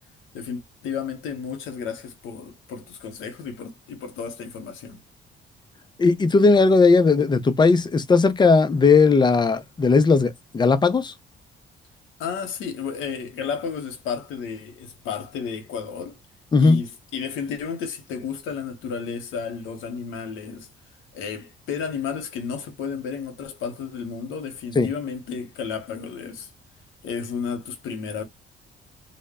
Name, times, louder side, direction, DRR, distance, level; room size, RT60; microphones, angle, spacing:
voice 1, 0.3-5.0 12.2-16.2 16.6-20.7 21.1-26.5 27.0-28.2, left 6 dB, 90° left, 0.7 m, -32 dB
voice 2, 6.0-11.1 16.5-16.8 24.8-24.9, left 4 dB, 20° left, 0.4 m, -17 dB
2.1 x 2.0 x 3.4 m
cardioid pair, 90°, 20 cm